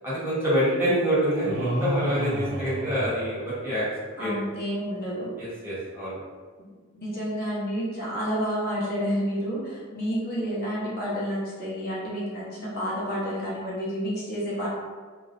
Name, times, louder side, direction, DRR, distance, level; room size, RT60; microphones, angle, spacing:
voice 1, 0.0-3.8 4.2-4.3 5.4-6.2, equal, 10° right, -10 dB, 0.8 m, -26 dB
sound 1, 1.4-3.9, right 1 dB, 60° right, 0.5 m, -31 dB
voice 2, 4.2-5.3 6.9-14.7, equal, 45° left, -7 dB, 0.8 m, -30 dB
2.4 x 2.0 x 2.4 m, 1.5 s
head